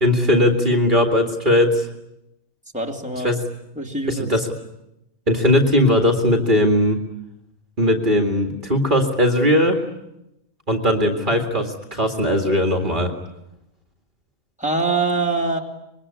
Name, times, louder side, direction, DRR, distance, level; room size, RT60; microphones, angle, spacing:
voice 1, 0.0-1.9 3.2-3.4 4.1-4.5 5.3-7.0 7.8-9.8 10.7-13.1, left 1 dB, 35° right, 3 dB, 2.3 m, -18 dB
voice 2, 2.7-3.3 3.7-4.3 14.6-15.6, right 3 dB, 5° right, 1 dB, 2.8 m, -23 dB
26.0 x 22.0 x 9.9 m, 0.88 s
omnidirectional pair, 1.4 m